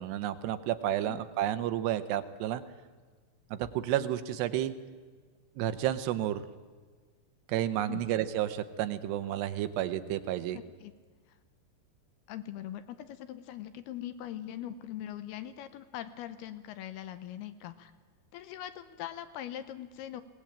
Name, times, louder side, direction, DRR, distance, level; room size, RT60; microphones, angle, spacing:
voice 1, 0.0-2.6 3.5-4.7 5.6-6.4 7.5-10.6, right 12 dB, 80° right, 11 dB, 3.0 m, -31 dB
voice 2, 10.5-10.9 12.3-17.9 18.3-20.2, left 11 dB, 75° left, 12 dB, 2.7 m, -41 dB
21.0 x 18.5 x 8.8 m, 1.5 s
omnidirectional pair, 4.9 m